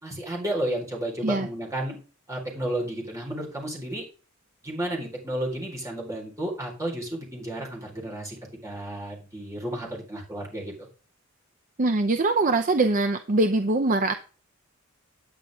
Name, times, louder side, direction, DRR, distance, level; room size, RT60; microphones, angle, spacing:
voice 1, 0.0-2.0 2.3-4.0 4.6-8.4 8.6-10.9, right 1 dB, 15° right, -2 dB, 4.3 m, -32 dB
voice 2, 11.8-14.1, right 2 dB, 40° right, 8 dB, 0.7 m, -23 dB
9.7 x 9.0 x 3.6 m, 0.37 s
head